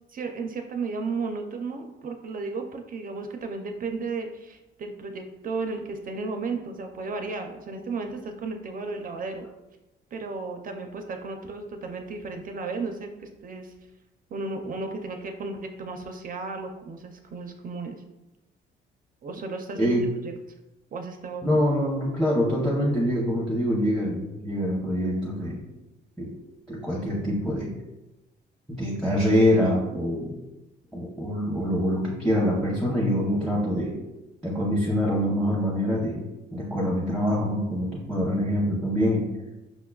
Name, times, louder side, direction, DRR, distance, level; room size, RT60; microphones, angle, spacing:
voice 1, 0.1-9.5 10.1-13.7 14.3-18.0 19.2-19.9 20.9-21.6, right 3 dB, 45° right, 5 dB, 0.4 m, -34 dB
voice 2, 21.4-25.6 26.2-26.4 26.7-27.7 28.7-30.4 30.9-33.9 34.4-36.2 36.5-39.2, equal, 5° left, -5 dB, 0.7 m, -25 dB
5.5 x 2.2 x 2.2 m, 1.0 s
cardioid pair, 90°, 20 cm